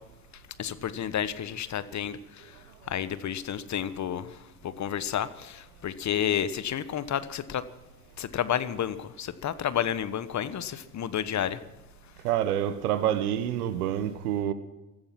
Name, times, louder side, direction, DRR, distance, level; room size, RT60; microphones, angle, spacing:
voice 1, 0.6-2.6 2.9-7.6 8.2-11.6, left 9 dB, 40° left, 1.2 m, -31 dB
voice 2, 12.2-14.5, right 11 dB, 80° right, 1.4 m, -27 dB
16.5 x 14.0 x 5.9 m
hypercardioid pair, 70°, 44 cm